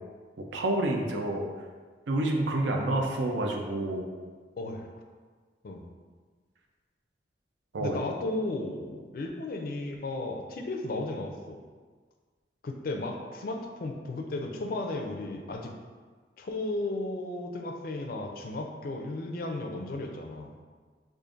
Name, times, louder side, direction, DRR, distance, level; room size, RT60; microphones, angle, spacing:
voice 1, 0.5-1.5 2.1-4.1 7.7-8.0, right 1 dB, 75° right, 2 dB, 0.5 m, -28 dB
voice 2, 7.8-11.6 12.6-15.7 16.4-20.5, left 2 dB, 50° left, 3 dB, 0.4 m, -34 dB
5.0 x 2.5 x 2.4 m, 1.5 s
head